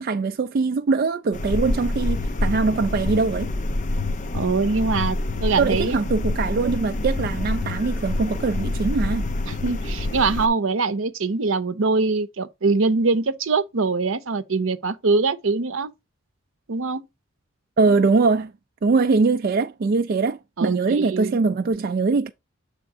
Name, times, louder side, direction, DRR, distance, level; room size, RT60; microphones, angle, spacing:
voice 1, 0.0-3.5 5.6-9.3 17.8-18.5 18.8-22.3, right 4 dB, 45° right, 0.3 m, -22 dB
sound 1, 1.3-10.5, left 2 dB, 35° left, 0.6 m, -26 dB
voice 2, 4.3-6.0 9.5-15.9 16.7-17.0 20.6-21.4, right 4 dB, 75° right, 0.7 m, -23 dB
7.6 x 3.5 x 4.8 m
head